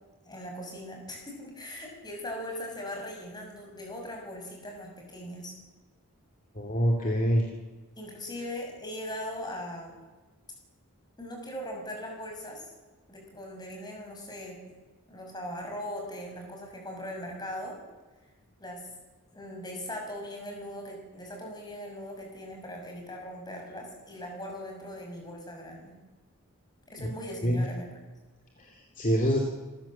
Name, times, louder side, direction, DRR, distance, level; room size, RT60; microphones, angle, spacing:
voice 1, 0.2-5.5 8.0-10.0 11.2-12.7 13.1-14.7 15.1-17.8 18.6-18.8 19.3-26.0 26.9-27.9, equal, 20° left, 1 dB, 6.2 m, -40 dB
voice 2, 6.5-7.5 27.4-27.6 28.6-29.4, equal, 35° left, 0 dB, 2.7 m, -26 dB
26.0 x 15.0 x 7.4 m, 1.2 s
head